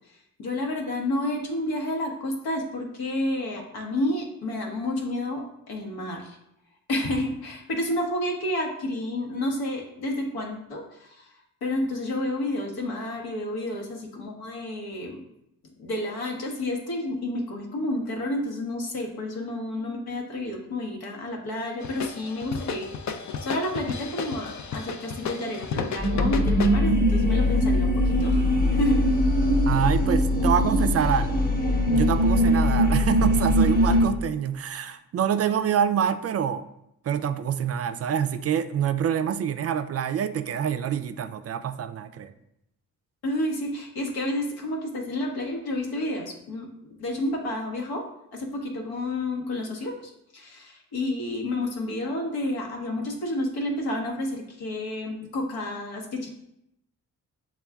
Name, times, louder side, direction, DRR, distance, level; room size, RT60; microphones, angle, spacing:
voice 1, 0.1-6.4 6.9-11.3 11.6-15.2 15.8-23.1 23.4-28.4 28.7-29.1 43.2-56.3, left 1 dB, 75° left, 0 dB, 1.0 m, -30 dB
sound 1, 21.8-26.8, left 6 dB, 50° left, 0.5 m, -33 dB
sound 2, 26.0-34.1, equal, 25° left, 1.0 m, -21 dB
voice 2, 29.7-31.5 31.9-36.6 37.0-42.3, right 8 dB, 40° right, 10 dB, 0.4 m, -26 dB
6.9 x 2.3 x 2.3 m, 0.81 s
hypercardioid pair, 40°, 37 cm